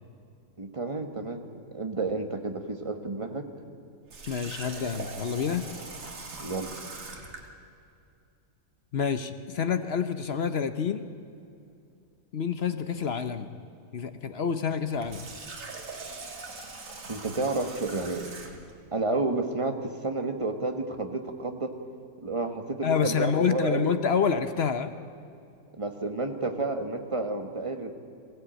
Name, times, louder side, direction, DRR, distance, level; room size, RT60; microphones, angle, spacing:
voice 1, 0.6-1.4 1.7-3.5 6.4-6.7 17.1-18.3 18.9-21.7 22.2-23.9 25.8-27.9, right 3 dB, 20° right, 5 dB, 1.5 m, -30 dB
Water tap faucet, 4.1-7.5 14.9-18.7, right 3 dB, 60° right, 2.3 m, -41 dB
voice 2, 4.3-5.7 8.9-11.0 12.3-13.5 13.9-15.2 22.8-24.9, left 6 dB, 50° left, 10 dB, 1.0 m, -28 dB
22.5 x 15.5 x 9.0 m, 2.5 s
omnidirectional pair, 1.5 m